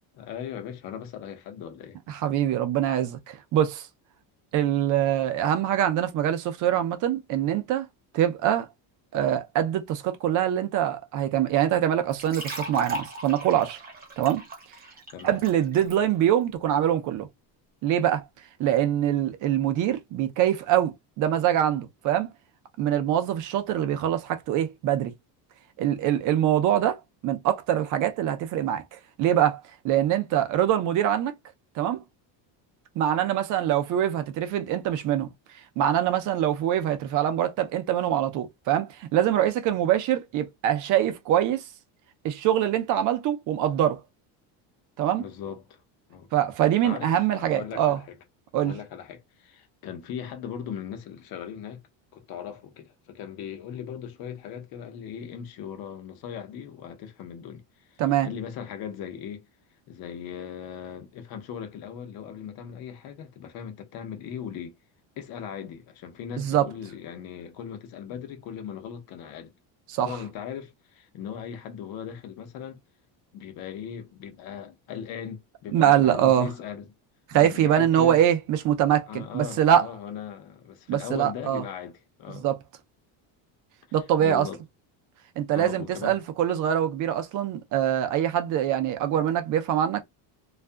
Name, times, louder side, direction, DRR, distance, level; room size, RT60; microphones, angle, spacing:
voice 1, 0.2-2.0 15.1-15.4 45.2-45.8 46.1-46.3 46.8-48.2 48.6-51.8 52.1-59.5 59.9-64.8 65.2-69.5 70.0-72.8 73.3-76.9 77.3-78.2 79.1-82.5 84.2-84.6 85.5-86.2, left 8 dB, 50° left, 0.8 m, -38 dB
voice 2, 2.1-3.9 4.5-7.9 8.1-8.7 9.1-13.8 14.2-14.4 15.2-17.3 17.8-18.2 18.6-22.3 22.8-25.1 25.8-31.3 31.8-32.0 33.0-41.7 42.2-44.0 45.0-45.3 46.3-48.0 48.5-48.7 58.0-58.3 66.4-66.7 69.9-70.1 75.7-76.5 77.3-79.9 80.9-81.6 82.3-82.6 83.9-84.5 85.4-90.0, right 11 dB, 45° right, 0.5 m, -24 dB
sound 1, 12.1-16.0, right 2 dB, 20° right, 0.8 m, -38 dB
2.6 x 2.4 x 2.2 m
cardioid pair, 155°, 44 cm